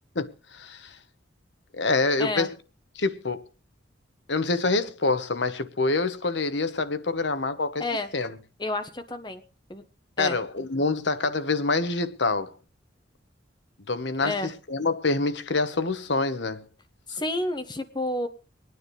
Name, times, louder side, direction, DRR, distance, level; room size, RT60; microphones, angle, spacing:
voice 1, 0.1-0.9 1.7-2.6 2.9-3.4 4.3-7.8 8.1-8.4 10.2-12.5 13.9-16.6, left 3 dB, 70° left, 1.2 m, -26 dB
voice 2, 8.6-9.4 9.7-9.8 10.2-10.4 14.2-14.5 17.1-18.3, left 2 dB, 25° left, 0.9 m, -30 dB
25.5 x 9.7 x 3.3 m
head